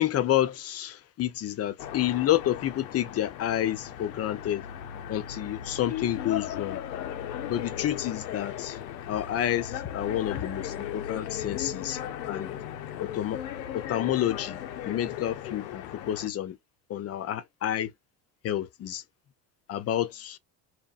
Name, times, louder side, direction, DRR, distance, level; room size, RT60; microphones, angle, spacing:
voice 1, 0.0-4.6 5.1-6.8 7.5-8.8 9.1-12.0 12.3-12.5 13.0-13.4 13.7-14.6 14.8-16.6 16.9-17.9 18.4-19.0 19.7-20.4, left 12 dB, 35° left, 0.4 m, -29 dB
sound 1, 1.8-16.3, left 10 dB, 85° left, 0.6 m, -37 dB
2.7 x 2.1 x 2.3 m
hypercardioid pair, 70°, 48 cm